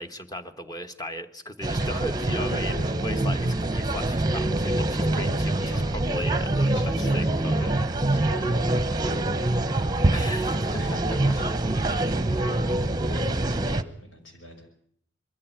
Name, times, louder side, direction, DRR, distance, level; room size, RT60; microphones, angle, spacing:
voice 1, 0.0-7.7 10.1-11.0 12.5-12.7, equal, 20° left, 8 dB, 1.3 m, -37 dB
sound 1, 1.6-13.8, right 2 dB, 20° right, 0.9 m, -25 dB
voice 2, 2.5-2.8 5.6-5.9 6.7-7.2 7.6-10.4 10.8-12.6 13.0-14.5, left 1 dB, 80° left, 3 dB, 6.1 m, -43 dB
22.5 x 14.5 x 9.2 m, 0.68 s
head